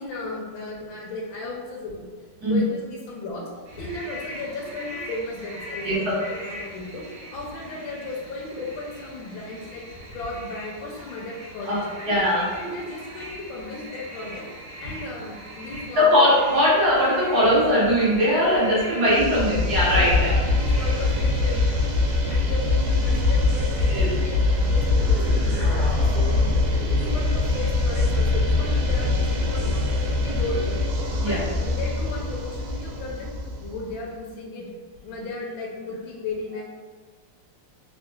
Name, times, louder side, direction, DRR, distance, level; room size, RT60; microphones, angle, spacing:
voice 1, 0.0-2.1 2.5-3.5 3.8-7.1 7.3-9.8 10.1-12.2 12.5-14.5 14.8-16.3 19.3-22.0 22.3-26.5 27.0-29.9 30.2-30.8 31.2-33.3 33.6-34.7 35.0-36.6, left 2 dB, 75° left, -2 dB, 1.3 m, -35 dB
sound 1, 3.7-21.8, equal, 75° right, 1.5 m, -41 dB
voice 2, 11.7-12.5 16.0-20.3 23.9-24.1 31.2-31.4, equal, 55° right, -8 dB, 1.3 m, -20 dB
sound 2, 19.1-33.9, left 2 dB, 90° right, 1.5 m, -23 dB
sound 3, 24.9-27.2, equal, 55° left, 0.9 m, -37 dB
3.5 x 2.7 x 2.2 m, 1.5 s
omnidirectional pair, 2.4 m